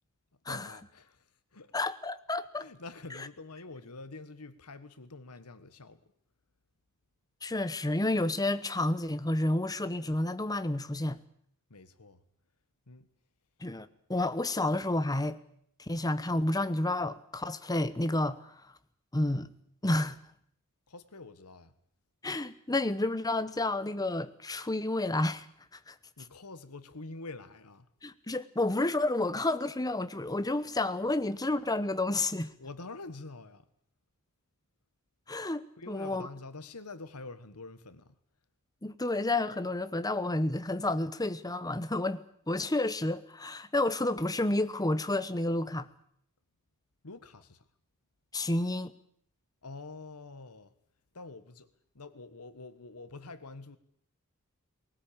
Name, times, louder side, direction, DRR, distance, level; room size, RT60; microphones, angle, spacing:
voice 1, 0.5-1.7 2.6-6.0 11.7-12.2 12.9-13.1 20.9-21.7 26.2-27.9 32.6-33.7 35.8-38.1 47.0-47.6 49.6-50.7 51.1-51.7 51.9-53.8, left 3 dB, 85° left, 1.5 m, -46 dB
voice 2, 1.7-2.7 7.4-11.2 13.6-15.4 15.9-18.4 19.1-19.5 19.8-20.2 22.2-25.5 25.9-26.0 28.0-32.5 35.3-36.3 38.8-45.9 48.3-48.9, left 2 dB, 15° left, 1.0 m, -30 dB
20.5 x 18.5 x 8.8 m
head